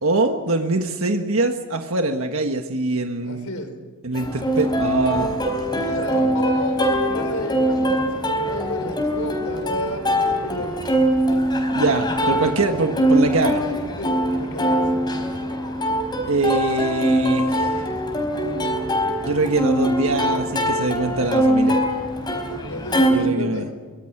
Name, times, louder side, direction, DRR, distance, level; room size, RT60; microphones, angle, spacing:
voice 1, 0.0-3.5 4.0-6.3 11.7-13.6 16.3-17.9 19.2-21.8 23.1-23.7, right 2 dB, 65° right, 5 dB, 1.6 m, -23 dB
voice 2, 3.2-3.7 5.7-10.8 14.0-14.9 22.7-23.7, left 1 dB, 75° left, 7 dB, 4.6 m, -31 dB
Plucked string instrument, 4.1-23.1, equal, 20° left, 4.5 m, -22 dB
24.5 x 22.5 x 6.1 m, 1.5 s
head